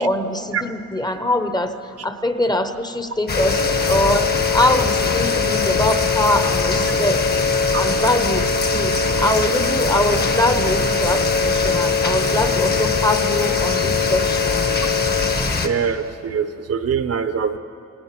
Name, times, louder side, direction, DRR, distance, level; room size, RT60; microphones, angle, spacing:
voice 1, 0.0-7.2 7.7-14.8, left 1 dB, 15° left, 8 dB, 1.0 m, -23 dB
sound 1, 3.3-15.3, left 5 dB, 65° left, 3.3 m, -23 dB
sound 2, 3.3-15.7, left 4 dB, 35° left, 1.4 m, -23 dB
voice 2, 15.6-17.6, right 6 dB, 55° right, 10 dB, 1.0 m, -23 dB
28.5 x 18.5 x 6.0 m, 2.5 s
wide cardioid pair, 130°, 30 cm